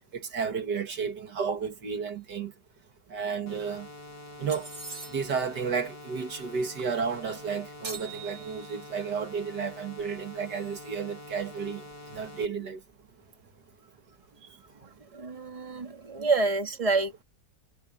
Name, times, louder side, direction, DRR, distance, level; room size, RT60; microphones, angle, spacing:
voice 1, 0.1-2.5 3.1-3.9 4.4-4.7 5.1-11.8 12.1-12.8, right 6 dB, 70° right, 2.3 m, -32 dB
sound 1, 3.5-12.5, left 1 dB, 90° left, 6.9 m, -46 dB
sound 2, 4.5-5.5 7.8-8.9, right 4 dB, 50° right, 4.4 m, -42 dB
voice 2, 15.1-17.2, right 3 dB, 20° right, 2.1 m, -28 dB
omnidirectional pair, 1.9 m